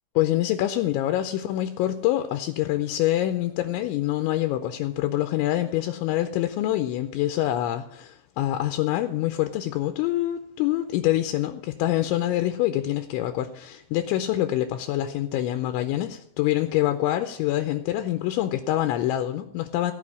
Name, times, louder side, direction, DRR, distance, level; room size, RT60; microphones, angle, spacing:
voice 1, 0.2-19.9, left 14 dB, 85° left, 8 dB, 2.9 m, -25 dB
16.0 x 5.4 x 8.2 m, 0.73 s
omnidirectional pair, 5.5 m